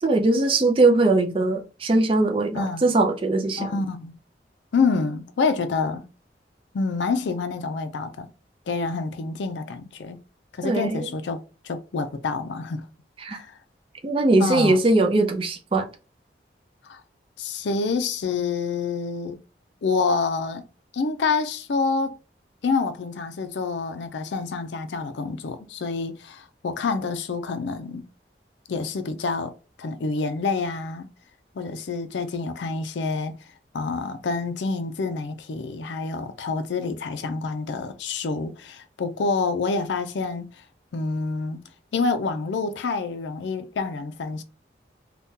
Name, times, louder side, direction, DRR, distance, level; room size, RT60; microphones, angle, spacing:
voice 1, 0.0-3.7 10.6-11.1 13.2-13.4 14.0-15.8, right 2 dB, 30° right, 0.4 m, -20 dB
voice 2, 2.5-2.9 3.6-4.1 4.7-6.0 6.7-8.3 8.7-10.2 10.5-12.9 13.3-13.5 14.4-14.8 16.9-17.0 17.4-19.4 19.8-20.6 20.9-22.2 22.6-28.0 28.7-29.5 29.8-31.1 31.6-33.3 33.7-40.6 40.9-41.6 41.9-44.4, left 4 dB, 80° left, 0.4 m, -27 dB
3.5 x 2.2 x 2.7 m
head